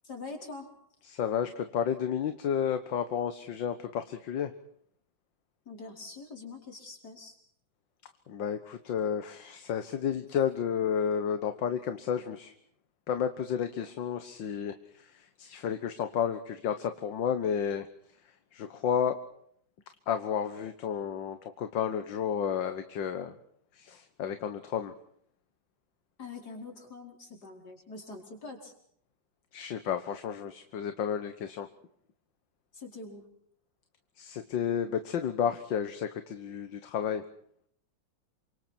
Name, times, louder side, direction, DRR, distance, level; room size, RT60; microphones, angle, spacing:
voice 1, 0.0-0.7 5.7-7.4 26.2-28.7 32.7-33.3, left 3 dB, 55° left, 2 dB, 5.5 m, -44 dB
voice 2, 1.1-4.5 8.3-12.5 13.1-17.9 18.5-19.2 20.1-23.3 23.8-24.9 29.5-31.7 34.2-37.2, left 8 dB, 75° left, 9 dB, 2.0 m, -31 dB
28.5 x 26.0 x 4.5 m, 0.66 s
omnidirectional pair, 2.0 m